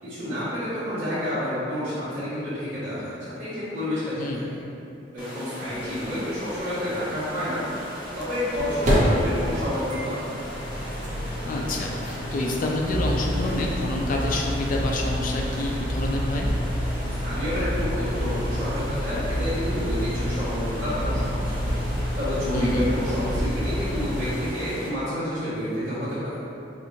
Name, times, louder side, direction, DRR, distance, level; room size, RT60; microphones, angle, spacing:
voice 1, 0.0-4.6 5.1-7.6 8.1-10.4 17.2-21.6 22.1-26.4, left 1 dB, 75° right, -15 dB, 1.2 m, -29 dB
voice 2, 4.2-4.5 11.4-16.5 22.5-22.9, left 2 dB, 50° left, -1 dB, 0.3 m, -28 dB
sound 1, 5.2-24.9, equal, 25° left, 0.8 m, -39 dB
sound 2, 6.0-6.1 8.0-24.3, equal, 45° right, 0.6 m, -28 dB
4.4 x 2.5 x 2.6 m, 2.9 s
head